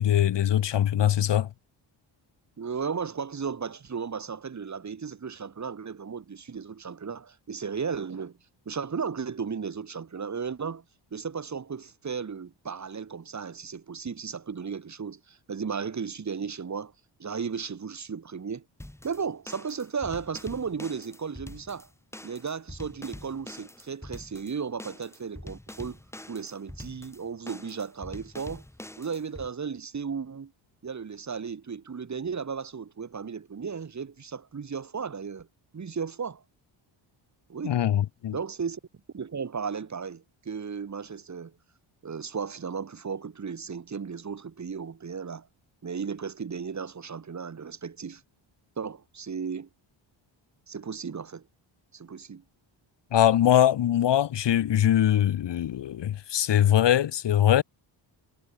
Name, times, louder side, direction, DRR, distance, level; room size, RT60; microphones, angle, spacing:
voice 1, 0.0-1.5 37.6-38.4 53.1-57.6, left 11 dB, 60° left, 1.7 m, -22 dB
voice 2, 2.6-8.4 8.7-10.8 11.1-16.9 17.2-18.6 19.0-21.9 22.2-26.0 26.3-28.6 29.0-30.5 30.8-35.5 35.7-36.4 37.5-37.8 38.3-38.8 39.1-41.5 42.0-45.5 45.8-48.2 48.8-49.7 50.7-51.4 51.9-52.4, right 6 dB, 35° right, 4.6 m, -35 dB
sound 1, 18.8-29.5, left 1 dB, 5° left, 2.7 m, -45 dB
cardioid pair, 140°, 47 cm